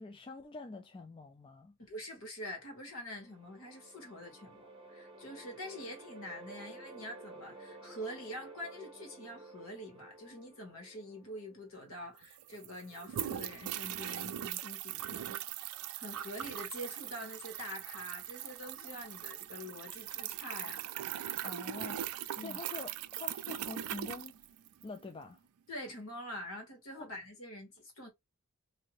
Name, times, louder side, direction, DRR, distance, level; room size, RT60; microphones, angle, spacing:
voice 1, 0.0-1.8 21.4-24.4 24.8-25.4 27.0-27.1, left 3 dB, 25° left, 0.3 m, -46 dB
voice 2, 1.8-15.4 15.9-20.8 22.4-22.6 25.7-28.1, equal, 70° left, 1.6 m, -45 dB
sound 1, 2.8-11.9, right 2 dB, 25° right, 0.7 m, -53 dB
sound 2, 11.9-12.0 12.2-25.0, right 11 dB, 85° right, 0.3 m, -40 dB
2.7 x 2.6 x 3.0 m
head